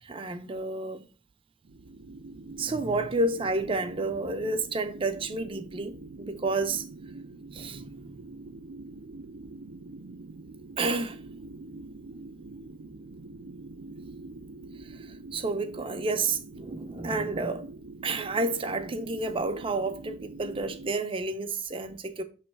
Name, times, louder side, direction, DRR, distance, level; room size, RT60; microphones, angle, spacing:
voice 1, 0.0-1.1 2.6-6.8 7.5-8.2 10.8-11.2 14.8-17.7 18.0-22.2, right 3 dB, 30° right, 0.5 m, -30 dB
sound 1, 1.6-21.0, right 3 dB, 80° right, 0.6 m, -45 dB
6.8 x 3.1 x 4.4 m
head